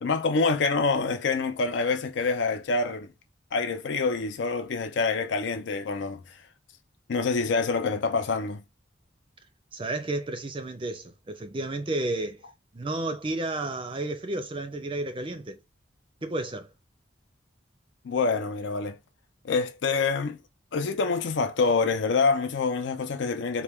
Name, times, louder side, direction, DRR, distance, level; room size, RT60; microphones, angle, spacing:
voice 1, 0.0-3.1 3.5-6.2 7.1-8.6 18.0-19.0 19.4-20.4 20.7-23.6, left 4 dB, 75° left, 0.5 m, -26 dB
voice 2, 9.7-12.4 12.7-15.6 16.2-16.7, right 2 dB, 30° right, 0.4 m, -32 dB
4.3 x 2.2 x 3.4 m
head